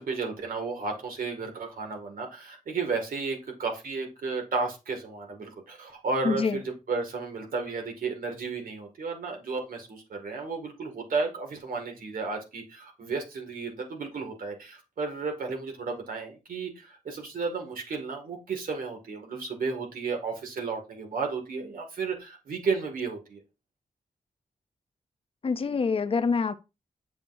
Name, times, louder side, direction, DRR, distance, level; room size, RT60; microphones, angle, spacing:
voice 1, 0.0-23.4, right 4 dB, 85° right, 2.0 m, -33 dB
voice 2, 6.2-6.6 25.4-26.5, left 5 dB, 40° left, 0.5 m, -26 dB
7.9 x 6.9 x 2.6 m
wide cardioid pair, 140°, 14 cm